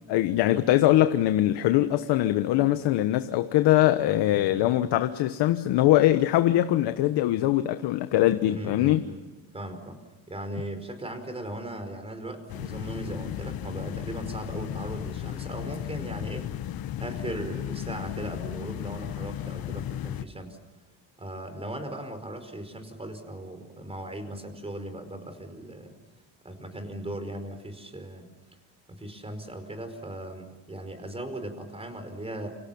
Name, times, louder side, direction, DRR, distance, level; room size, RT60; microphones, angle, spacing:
voice 1, 0.1-9.0, left 14 dB, 75° left, 9 dB, 1.3 m, -22 dB
voice 2, 8.5-9.3 9.5-10.0 10.3-16.5 17.0-20.6 21.2-25.9 26.4-28.3 28.9-32.5, right 1 dB, 15° right, 8 dB, 5.0 m, -38 dB
sound 1, 12.5-20.3, left 11 dB, 60° left, 1.1 m, -35 dB
29.0 x 26.5 x 7.1 m, 1.1 s
cardioid pair, 125°, 41 cm